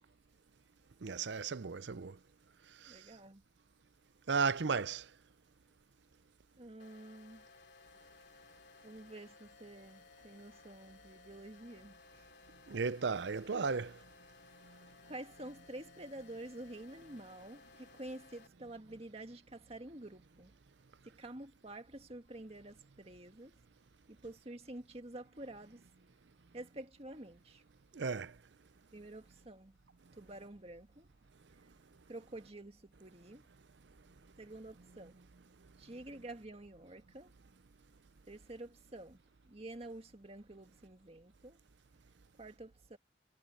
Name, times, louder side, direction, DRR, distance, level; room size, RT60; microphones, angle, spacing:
voice 1, 1.0-2.2 2.8-3.0 4.3-5.0 12.7-13.9 27.9-28.3, right 5 dB, 70° right, 0.6 m, -34 dB
voice 2, 2.8-3.4 6.6-7.5 8.8-12.3 15.1-20.5 21.0-23.6 24.1-25.9 26.5-27.6 28.9-29.8 30.1-31.1 32.1-33.5 34.4-35.2 35.8-37.3 38.3-41.6 42.4-43.0, right 1 dB, 35° right, 1.9 m, -49 dB
sound 1, 6.8-18.5, left 4 dB, 60° left, 3.3 m, -60 dB
head